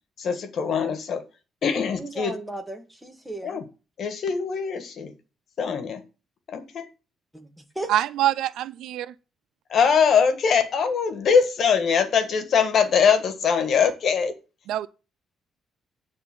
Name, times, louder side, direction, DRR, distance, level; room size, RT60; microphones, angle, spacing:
voice 1, 0.2-1.2 1.6-2.3 3.4-3.6 4.0-5.1 5.6-6.0 6.5-6.9 9.7-14.3, left 6 dB, 60° left, 1.5 m, -22 dB
voice 2, 1.9-3.7 7.3-7.9, right 1 dB, 5° right, 1.9 m, -36 dB
voice 3, 7.9-9.1 14.7-14.9, right 12 dB, 85° right, 0.4 m, -25 dB
9.6 x 3.6 x 5.9 m
cardioid pair, 90°, 0 cm